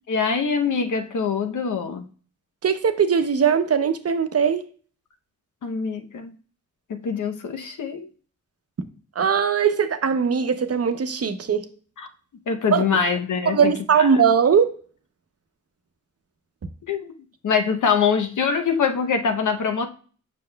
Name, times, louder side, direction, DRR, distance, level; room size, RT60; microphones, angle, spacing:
voice 1, 0.1-2.0 5.6-6.3 6.9-8.1 12.0-12.1 12.5-14.1 16.9-17.1 17.4-19.9, left 6 dB, 75° left, 0.8 m, -24 dB
voice 2, 2.6-4.7 9.2-11.6 12.7-12.8 13.5-14.7, right 6 dB, 50° right, 0.8 m, -20 dB
7.6 x 6.1 x 2.2 m
cardioid pair, 75°, 30 cm